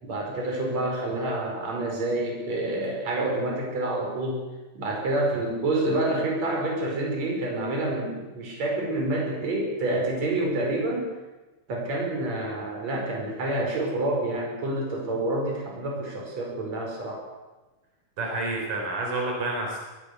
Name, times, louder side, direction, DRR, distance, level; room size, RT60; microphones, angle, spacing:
voice 1, 0.0-4.4 4.7-11.1 11.7-17.2, right 2 dB, 55° right, -1 dB, 6.6 m, -28 dB
voice 2, 18.2-19.8, right 2 dB, 80° right, 0 dB, 6.3 m, -29 dB
22.0 x 17.5 x 8.4 m, 1.1 s
omnidirectional pair, 3.7 m